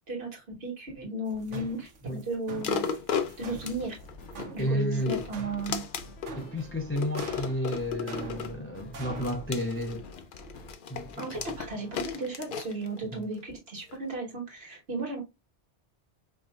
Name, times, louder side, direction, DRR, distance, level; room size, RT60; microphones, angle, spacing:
voice 1, 0.1-2.9 3.4-4.0 4.5-5.8 11.2-15.2, right 2 dB, 60° right, 1.8 m, -35 dB
sound 1, 1.3-9.5, right 3 dB, 80° right, 1.3 m, -45 dB
sound 2, 2.6-4.5 4.9-6.4 7.0-8.6 9.2-13.4 13.9-14.0, left 6 dB, 55° left, 0.7 m, -35 dB
sound 3, 3.2-12.2, left 2 dB, 85° left, 1.1 m, -48 dB
voice 2, 4.6-5.2 6.4-10.0 10.9-11.3 13.1-13.2, equal, 20° left, 0.4 m, -32 dB
5.4 x 2.7 x 2.4 m
omnidirectional pair, 1.2 m